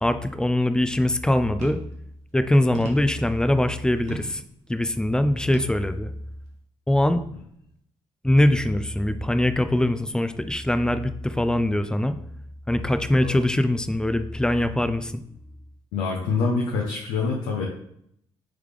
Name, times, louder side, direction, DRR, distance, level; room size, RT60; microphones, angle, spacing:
voice 1, 0.0-1.8 2.3-4.4 4.7-6.1 6.9-7.2 8.2-12.1 12.7-15.1, left 1 dB, 5° left, 10 dB, 0.4 m, -22 dB
sound 1, 1.6-2.0 2.7-3.2 4.1-4.4 5.5-5.8 6.5-6.6, right 3 dB, 75° right, 0.9 m, -36 dB
voice 2, 15.9-17.6, left 4 dB, 80° left, -1 dB, 0.6 m, -26 dB
3.6 x 3.3 x 3.2 m, 0.71 s
hypercardioid pair, 55°, 12 cm